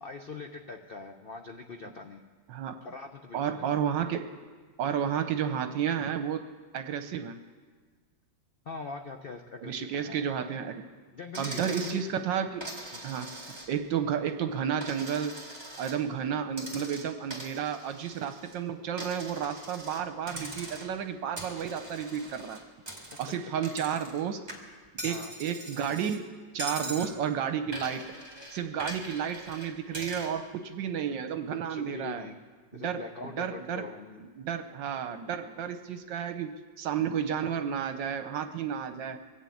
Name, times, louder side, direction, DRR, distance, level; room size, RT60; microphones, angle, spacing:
voice 1, 0.0-2.2 2.8-3.7 8.7-10.2 11.1-12.0 12.9-13.1 16.1-16.4 25.0-25.3 26.8-27.0 31.5-32.4 32.7-34.3, left 4 dB, 65° left, 5 dB, 0.5 m, -42 dB
voice 2, 3.3-4.3 4.8-6.4 6.7-7.4 9.6-10.8 11.4-12.7 13.0-13.3 13.7-15.3 15.8-22.6 23.2-24.4 25.0-26.3 26.5-28.0 28.5-32.3 32.7-33.8 34.2-39.2, right 8 dB, 75° right, 8 dB, 1.4 m, -32 dB
Coin (dropping), 11.3-12.0 12.6-13.9 14.3-16.0 16.5-18.6 19.0-20.0 20.3-21.0 21.4-24.2 24.5-26.2 26.6-27.1 27.7-30.3, right 1 dB, 15° right, 2.2 m, -42 dB
22.0 x 7.4 x 8.5 m, 1.5 s
omnidirectional pair, 2.0 m